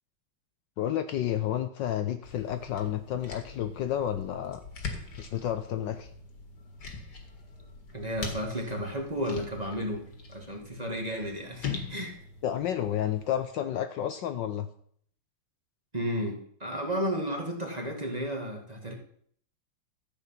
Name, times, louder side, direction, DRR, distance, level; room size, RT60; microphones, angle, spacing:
voice 1, 0.8-4.6 5.2-6.1 12.4-14.7, left 10 dB, 70° left, 10 dB, 1.2 m, -31 dB
sound 1, 2.2-13.5, left 5 dB, 50° left, 2.3 m, -42 dB
voice 2, 7.9-10.0 10.3-12.2 15.9-18.9, equal, 20° right, 1 dB, 1.8 m, -33 dB
13.0 x 8.4 x 5.6 m, 0.62 s
omnidirectional pair, 2.3 m